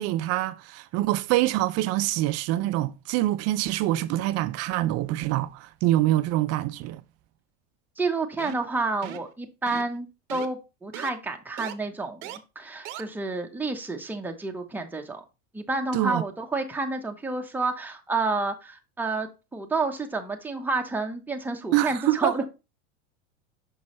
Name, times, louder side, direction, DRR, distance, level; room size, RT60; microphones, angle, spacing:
voice 1, 0.0-7.0 15.9-16.2 21.7-22.3, right 15 dB, 45° right, 0.5 m, -25 dB
voice 2, 8.0-15.2 15.5-22.5, right 3 dB, 5° right, 0.8 m, -30 dB
sound 1, 8.4-8.7 9.0-9.3 9.7-10.0 10.3-10.5 10.9-11.1 11.6-11.7 12.2-12.4 12.8-13.0, right 12 dB, 70° right, 0.8 m, -38 dB
6.2 x 5.3 x 3.0 m
hypercardioid pair, 100°, 38 cm